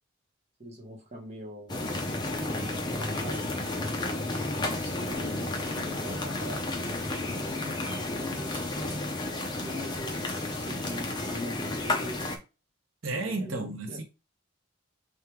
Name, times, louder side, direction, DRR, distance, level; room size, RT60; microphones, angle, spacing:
voice 1, 0.6-1.8 2.2-3.9 4.7-9.2 9.6-12.3 13.1-14.0, left 1 dB, 30° right, 1.0 m, -42 dB
sound 1, 1.7-12.4, left 2 dB, 20° left, 0.5 m, -32 dB
voice 2, 13.0-14.0, right 2 dB, 80° right, 0.8 m, -32 dB
3.5 x 2.3 x 4.4 m
head